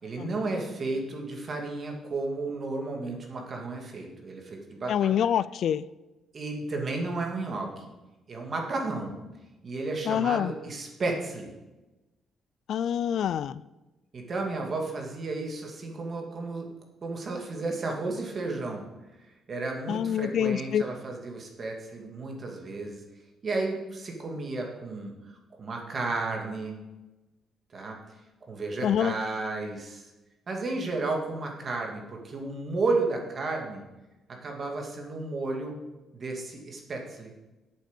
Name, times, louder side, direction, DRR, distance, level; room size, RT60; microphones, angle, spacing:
voice 1, 0.0-5.1 6.3-7.9 8.3-9.2 9.6-11.5 14.1-16.7 17.0-18.9 19.5-23.0 23.4-26.8 27.7-28.0 28.4-30.0 30.5-33.9 34.3-35.8 36.1-37.3, right 3 dB, 45° right, 1 dB, 2.6 m, -33 dB
voice 2, 4.9-5.8 10.1-10.5 12.7-13.6 19.9-20.8 28.8-29.1, left 9 dB, 70° left, 18 dB, 0.3 m, -26 dB
8.4 x 7.7 x 8.3 m, 1.1 s
cardioid pair, 90°, 0 cm